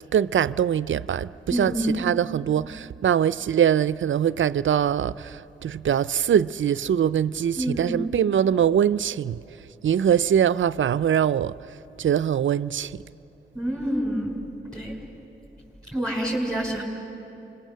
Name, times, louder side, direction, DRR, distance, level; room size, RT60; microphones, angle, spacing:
voice 1, 0.0-9.4 9.8-11.5 12.0-13.0, right 9 dB, 70° right, 0.5 m, -23 dB
voice 2, 1.5-2.0 7.6-8.0 13.5-14.3 14.7-14.9 15.9-16.8, right 1 dB, 5° left, 5.2 m, -27 dB
26.5 x 21.5 x 6.8 m
cardioid pair, 40°, 21 cm